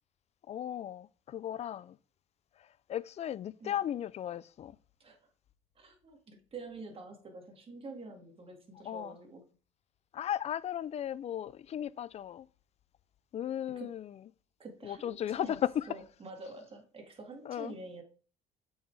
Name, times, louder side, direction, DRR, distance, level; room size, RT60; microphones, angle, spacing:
voice 1, 0.5-2.0 2.9-4.7 8.9-9.2 10.1-12.5 13.3-14.1 14.8-15.9 17.5-17.7, left 10 dB, 40° left, 0.4 m, -36 dB
voice 2, 5.8-9.4 13.7-13.9 14.6-15.6 15.9-18.0, right 3 dB, 35° right, 2.1 m, -47 dB
8.1 x 5.6 x 3.4 m
cardioid pair, 105°, 16 cm